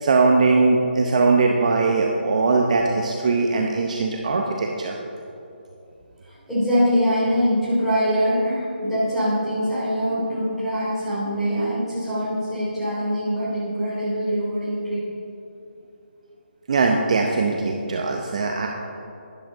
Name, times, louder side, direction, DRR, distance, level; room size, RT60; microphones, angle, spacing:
voice 1, 0.0-4.9 16.7-18.7, right 3 dB, 40° right, 1 dB, 0.7 m, -20 dB
voice 2, 6.2-15.0, equal, ahead, -13 dB, 2.9 m, -23 dB
12.5 x 10.5 x 3.9 m, 2.8 s
hypercardioid pair, 170°, 6 cm